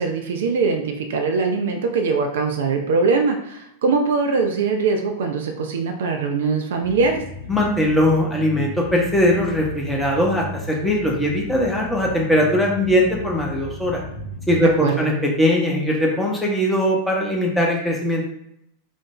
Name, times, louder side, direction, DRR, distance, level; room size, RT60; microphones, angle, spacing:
voice 1, 0.0-7.2 14.6-15.1, right 4 dB, 60° right, 4 dB, 0.3 m, -22 dB
sound 1, 6.8-14.8, left 2 dB, 65° left, 0.9 m, -35 dB
voice 2, 7.5-14.0 14.5-18.2, left 1 dB, 5° left, -2 dB, 0.7 m, -20 dB
2.5 x 2.0 x 3.0 m, 0.76 s
figure-of-eight pair, 90°, 0 cm